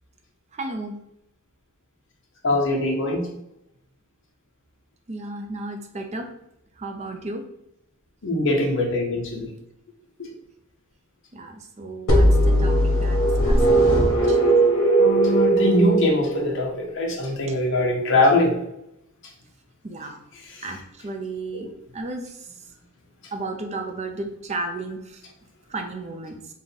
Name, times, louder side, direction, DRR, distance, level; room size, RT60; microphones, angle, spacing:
voice 1, 0.5-1.0 5.1-6.3 6.8-7.4 11.3-14.4 19.8-20.2 20.6-21.7 21.9-22.5 23.3-25.2 25.7-26.4, right 2 dB, 30° right, 4 dB, 0.5 m, -34 dB
voice 2, 2.4-3.3 8.2-9.5 10.2-10.3 15.0-18.5 21.5-21.7, left 1 dB, 60° left, 0 dB, 0.8 m, -22 dB
sound 1, 12.1-16.8, right 1 dB, 80° left, 1.1 m, -18 dB
3.5 x 2.2 x 4.0 m, 0.81 s
head